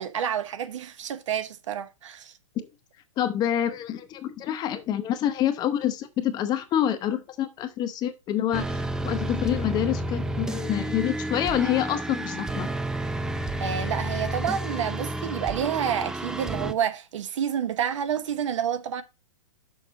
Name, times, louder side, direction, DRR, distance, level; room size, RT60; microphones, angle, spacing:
voice 1, 0.0-2.3 13.6-19.0, right 9 dB, 65° right, 1.1 m, -29 dB
voice 2, 3.2-12.7, left 11 dB, 25° left, 0.8 m, -27 dB
sound 1, 8.5-16.7, right 1 dB, 5° right, 0.3 m, -31 dB
6.4 x 6.4 x 3.9 m
hypercardioid pair, 135°, 17 cm